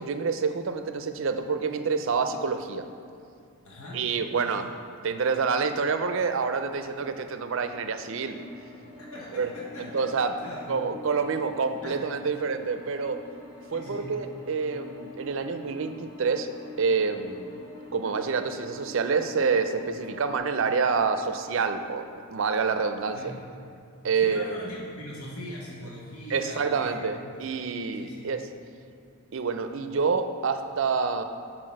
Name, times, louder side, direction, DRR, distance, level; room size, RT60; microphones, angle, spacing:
voice 1, 0.0-2.8 3.9-4.7 5.0-8.4 9.4-9.5 9.8-10.4 10.7-13.2 13.7-16.5 16.8-17.6 17.9-23.2 24.0-24.6 26.3-28.4 29.3-31.2, right 5 dB, 60° right, 8 dB, 0.4 m, -27 dB
voice 2, 3.6-4.7 9.0-10.1 10.4-10.7 11.8-12.0 13.7-14.1 23.1-23.4 24.2-27.0 27.3-27.5 27.9-28.3, left 1 dB, 75° left, -4 dB, 1.0 m, -41 dB
sound 1, 8.1-20.4, left 1 dB, 15° left, 0.8 m, -46 dB
5.9 x 4.5 x 6.3 m, 2.4 s
head